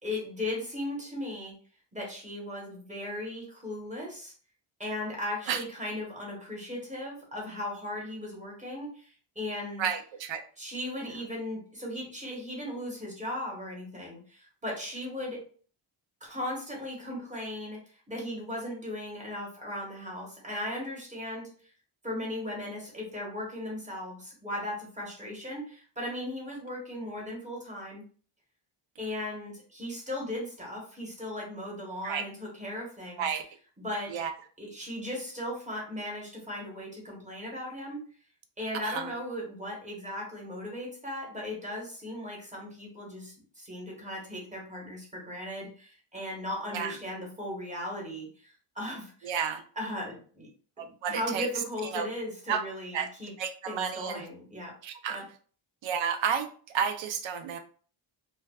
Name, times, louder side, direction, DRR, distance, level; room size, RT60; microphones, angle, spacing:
voice 1, 0.0-1.5 1.9-4.3 4.8-9.8 10.6-15.4 16.2-17.8 18.1-21.5 22.0-28.0 29.0-33.2 33.8-34.2 34.6-38.0 38.6-49.3 49.8-50.5 50.8-53.3 53.7-54.8 55.1-55.2, left 1 dB, 15° right, -2 dB, 1.1 m, -37 dB
voice 2, 9.8-10.4 32.0-32.2 33.2-33.4 34.1-34.3 38.7-39.1 46.7-46.9 49.2-49.6 50.8-51.5 51.8-52.1 52.5-52.6 52.9-53.1 53.4-54.2 54.8-55.2 55.8-57.6, right 7 dB, 65° right, 7 dB, 0.5 m, -31 dB
2.5 x 2.2 x 2.3 m, 0.42 s
cardioid pair, 100°, 50 cm